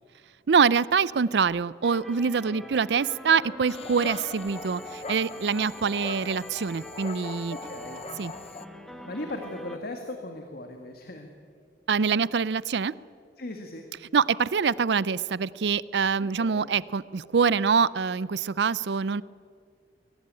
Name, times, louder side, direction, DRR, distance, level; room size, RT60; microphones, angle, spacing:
voice 1, 0.5-7.5 8.2-8.3 11.9-12.9 14.1-19.2, right 6 dB, 70° right, 20 dB, 0.5 m, -25 dB
sound 1, 1.8-9.8, equal, ahead, 1.4 m, -43 dB
Dog, 3.7-8.7, left 4 dB, 35° left, 0.7 m, -41 dB
voice 2, 7.5-8.0 9.1-11.3 13.4-13.8 16.2-16.7, left 1 dB, 60° left, 4 dB, 1.8 m, -38 dB
23.0 x 17.0 x 8.9 m, 2.2 s
head